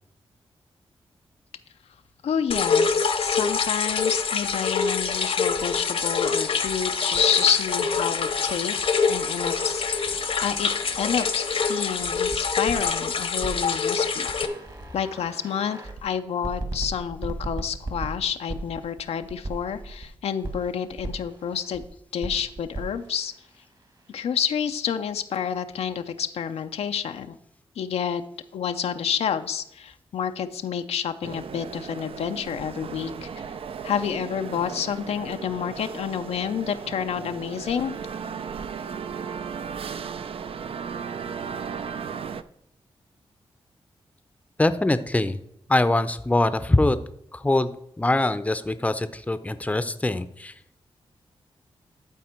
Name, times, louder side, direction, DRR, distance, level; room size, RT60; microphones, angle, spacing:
voice 1, 2.2-10.7 11.0-14.3 14.9-21.8 22.1-23.3 24.1-27.4 27.8-28.2 28.5-33.3 33.8-37.9, left 8 dB, 85° left, 8 dB, 0.5 m, -29 dB
sound 1, 2.5-14.5, left 5 dB, 65° left, 0.8 m, -25 dB
sound 2, 5.1-12.9 13.4-16.0 16.4-20.1 20.4-21.9 22.2-24.3, right 2 dB, 40° right, 1.6 m, -39 dB
sound 3, 31.2-42.4, right 6 dB, 65° right, 0.4 m, -36 dB
voice 2, 44.6-45.4 45.7-47.0 47.3-47.7 48.0-50.5, left 2 dB, 15° left, 12 dB, 0.6 m, -23 dB
12.0 x 4.3 x 4.4 m, 0.77 s
cardioid pair, 65°, 10 cm